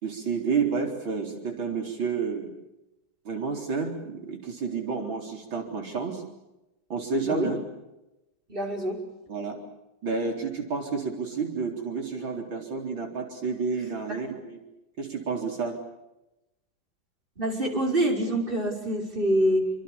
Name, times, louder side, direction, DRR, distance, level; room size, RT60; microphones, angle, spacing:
voice 1, 0.0-2.5 3.2-6.2 6.9-7.6 9.3-9.6 10.0-14.6 15.0-15.7, right 5 dB, 85° right, 3 dB, 4.7 m, -30 dB
voice 2, 8.5-9.0 17.4-19.8, right 1 dB, 25° right, 1 dB, 5.8 m, -26 dB
28.5 x 25.0 x 7.1 m, 0.95 s
omnidirectional pair, 2.1 m